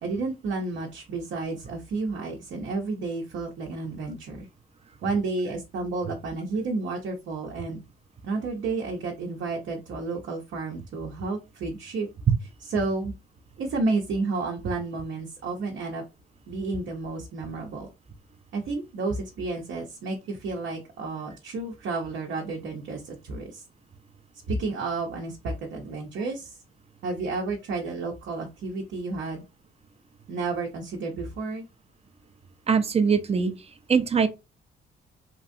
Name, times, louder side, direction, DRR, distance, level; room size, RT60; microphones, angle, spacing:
voice 1, 0.0-4.5 5.0-7.8 8.2-12.1 12.6-13.1 13.6-16.0 16.5-17.9 18.5-23.6 24.5-26.6 27.0-29.4 30.3-31.6, right 3 dB, 70° right, 0.7 m, -31 dB
voice 2, 32.7-33.5 33.9-34.3, right 6 dB, 30° right, 0.5 m, -22 dB
3.0 x 2.6 x 2.5 m
cardioid pair, 90°, 20 cm